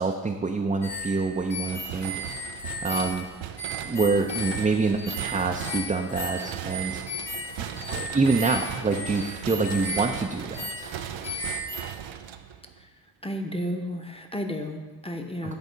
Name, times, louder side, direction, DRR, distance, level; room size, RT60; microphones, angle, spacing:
voice 1, 0.0-2.4 2.8-3.3 3.8-7.0 7.6-7.7 8.0-11.0 15.4-15.6, right 4 dB, 20° right, 2 dB, 0.5 m, -26 dB
sound 1, 0.8-11.9, left 1 dB, 60° left, 1.7 m, -35 dB
sound 2, 1.6-12.8, right 10 dB, 85° right, 0.5 m, -38 dB
voice 2, 13.2-15.6, equal, 15° left, 4 dB, 0.8 m, -32 dB
8.5 x 3.6 x 5.1 m, 1.3 s
cardioid pair, 50°, 45 cm